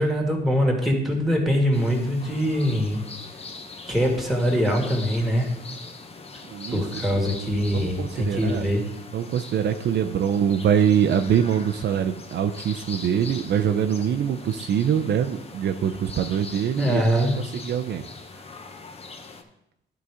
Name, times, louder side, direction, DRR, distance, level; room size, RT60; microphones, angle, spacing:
voice 1, 0.0-3.0 3.9-5.5 6.7-8.8 16.8-17.4, equal, ahead, 1 dB, 2.1 m, -23 dB
sound 1, 1.7-19.4, left 3 dB, 30° left, 0.9 m, -42 dB
voice 2, 6.5-6.8 7.1-7.3 7.7-8.7 9.1-17.0 17.4-18.1, right 8 dB, 60° right, 6 dB, 0.5 m, -24 dB
11.0 x 3.9 x 4.9 m, 0.84 s
cardioid pair, 90°, 20 cm